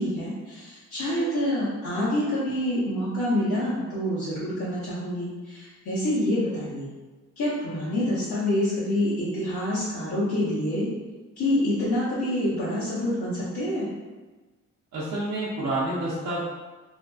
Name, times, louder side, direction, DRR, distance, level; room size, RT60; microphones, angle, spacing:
voice 1, 0.0-6.9 7.4-10.9 11.4-13.9, left 1 dB, 75° left, -11 dB, 0.9 m, -27 dB
voice 2, 14.9-16.4, right 1 dB, 70° right, -9 dB, 0.7 m, -28 dB
2.8 x 2.5 x 2.2 m, 1.3 s
cardioid pair, 90°, 30 cm